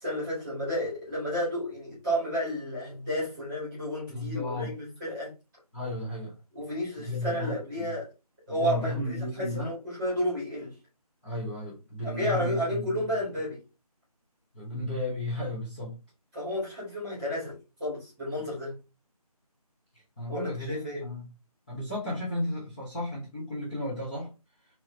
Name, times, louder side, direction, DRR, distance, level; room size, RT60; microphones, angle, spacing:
voice 1, 0.0-5.3 6.5-8.1 8.5-10.8 12.0-13.6 16.3-18.8 20.3-21.0, equal, 10° right, 1.7 m, -32 dB
voice 2, 4.1-4.7 5.7-6.3 7.0-8.0 8.5-9.7 11.2-13.0 14.5-16.0 20.2-21.3 21.7-24.3, left 1 dB, 15° left, 1.3 m, -34 dB
3.6 x 3.0 x 3.2 m
figure-of-eight pair, 170°, 20 cm